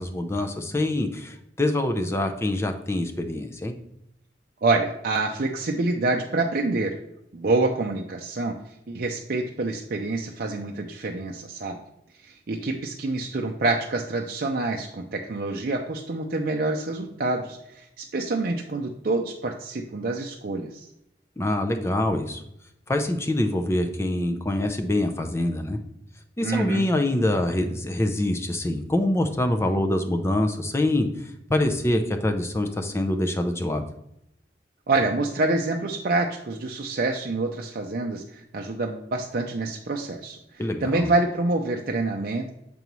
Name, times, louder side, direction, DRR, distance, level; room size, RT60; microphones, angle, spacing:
voice 1, 0.0-3.7 21.4-22.4 22.9-25.8 26.4-31.1 31.5-33.8 40.6-41.1, left 1 dB, 15° left, 6 dB, 0.5 m, -25 dB
voice 2, 4.6-6.9 7.3-11.8 12.2-20.9 26.4-26.9 34.9-42.5, right 2 dB, 55° right, 1 dB, 0.5 m, -27 dB
6.8 x 5.3 x 3.0 m, 0.79 s
head